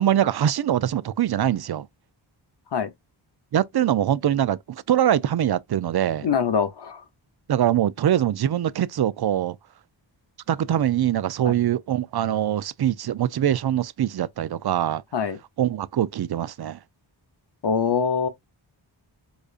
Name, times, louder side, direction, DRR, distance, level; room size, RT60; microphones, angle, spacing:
voice 1, 0.0-1.9 3.5-6.3 7.5-9.6 10.5-15.0 15.6-16.8, right 11 dB, 55° right, 0.5 m, -23 dB
voice 2, 6.2-7.0 11.4-11.5 15.1-15.4 17.6-18.3, left 6 dB, 60° left, 0.8 m, -23 dB
5.1 x 2.4 x 2.4 m
wide cardioid pair, 55°, 47 cm